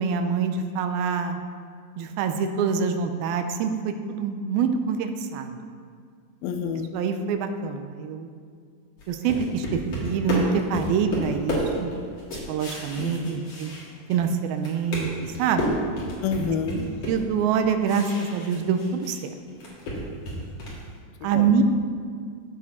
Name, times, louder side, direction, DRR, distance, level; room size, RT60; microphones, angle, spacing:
voice 1, 0.0-1.4 2.0-5.6 6.9-8.3 9.1-11.9 12.5-13.7 14.1-15.1 15.4-15.8 17.1-19.3 21.2-21.6, right 6 dB, 90° right, 7 dB, 2.5 m, -25 dB
voice 2, 6.4-7.0 13.0-13.5 16.2-16.9 21.2-21.5, left 6 dB, 85° left, 7 dB, 2.5 m, -29 dB
sound 1, 9.0-14.3 14.6-19.2 19.5-20.9, left 1 dB, 45° left, 2.9 m, -31 dB
14.5 x 6.4 x 4.3 m, 2.1 s
omnidirectional pair, 4.3 m